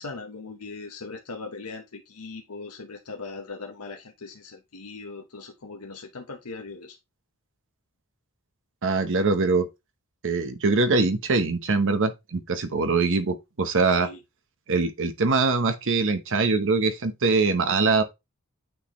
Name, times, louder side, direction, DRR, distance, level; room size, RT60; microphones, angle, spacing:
voice 1, 0.0-7.0 13.9-14.2, left 3 dB, 90° left, 0.9 m, -39 dB
voice 2, 8.8-9.7 10.2-14.1 14.7-18.0, right 3 dB, 60° right, 0.9 m, -23 dB
8.9 x 4.2 x 3.0 m
head